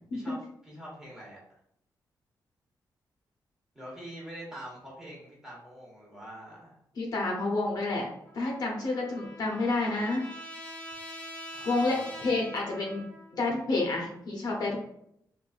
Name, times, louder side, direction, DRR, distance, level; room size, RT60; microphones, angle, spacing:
voice 1, 0.1-1.4 3.7-6.8 11.5-12.1, right 1 dB, 5° right, -5 dB, 1.2 m, -45 dB
voice 2, 7.0-8.1 8.3-10.2 11.7-13.0 13.3-14.8, left 2 dB, 60° left, -1 dB, 0.7 m, -29 dB
Trumpet, 8.2-13.4, equal, 20° left, 0.6 m, -44 dB
3.9 x 2.5 x 2.4 m, 0.75 s
wide cardioid pair, 150°, 8 cm